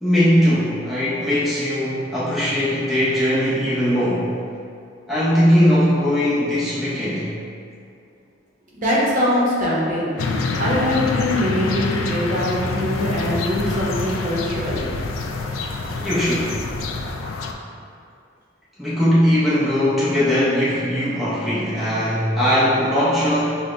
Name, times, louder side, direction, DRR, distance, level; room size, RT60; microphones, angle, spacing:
voice 1, 0.0-4.3 5.1-7.3 16.0-16.5 18.8-23.6, equal, ahead, -11 dB, 0.6 m, -19 dB
voice 2, 8.7-10.1 10.6-14.8, left 1 dB, 45° right, -6 dB, 0.8 m, -22 dB
sound 1, 10.2-17.5, left 3 dB, 90° left, 0.3 m, -26 dB
6.1 x 2.1 x 2.5 m, 2.4 s
head